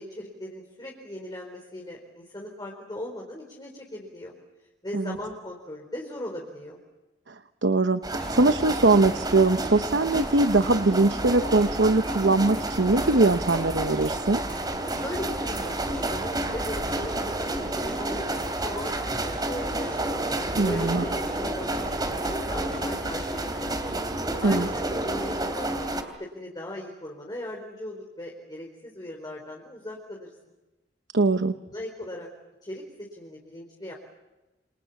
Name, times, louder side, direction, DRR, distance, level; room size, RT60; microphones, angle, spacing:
voice 1, 0.0-4.3 4.8-6.8 15.0-20.0 20.6-23.7 24.4-24.7 25.0-25.9 26.2-30.3 31.7-32.3 32.6-33.9, left 1 dB, 25° left, -1 dB, 4.4 m, -38 dB
voice 2, 7.6-14.4 20.6-21.0 24.4-24.7 31.1-31.5, right 3 dB, 85° right, 10 dB, 1.0 m, -22 dB
sound 1, 8.0-26.0, right 1 dB, 25° right, 3.1 m, -30 dB
sound 2, 8.2-23.6, equal, 5° left, 5.6 m, -47 dB
28.5 x 27.0 x 7.3 m, 1.1 s
head